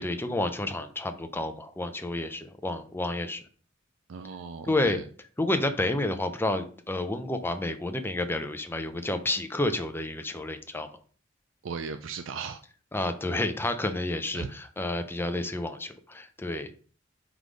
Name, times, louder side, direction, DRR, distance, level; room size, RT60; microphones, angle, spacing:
voice 1, 0.0-3.4 4.6-5.0 5.4-10.9 12.9-16.7, left 2 dB, 10° left, 7 dB, 0.6 m, -30 dB
voice 2, 4.1-5.0 11.6-12.6 14.3-14.5, right 5 dB, 70° right, 9 dB, 0.4 m, -37 dB
4.8 x 4.0 x 5.1 m, 0.42 s
head